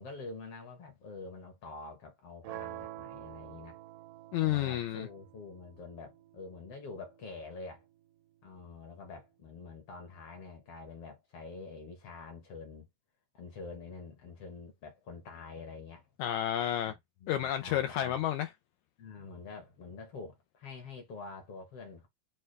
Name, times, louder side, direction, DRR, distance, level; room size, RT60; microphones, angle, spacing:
voice 1, 0.0-3.8 4.4-7.8 8.4-12.9 13.3-16.1 17.2-18.2 19.0-22.1, left 4 dB, 60° left, 1.7 m, -46 dB
sound 1, 2.4-8.5, right 14 dB, 85° right, 2.3 m, -49 dB
voice 2, 4.3-5.1 16.2-16.9 17.3-18.5, left 12 dB, 85° left, 1.7 m, -31 dB
6.5 x 2.3 x 3.2 m
omnidirectional pair, 3.9 m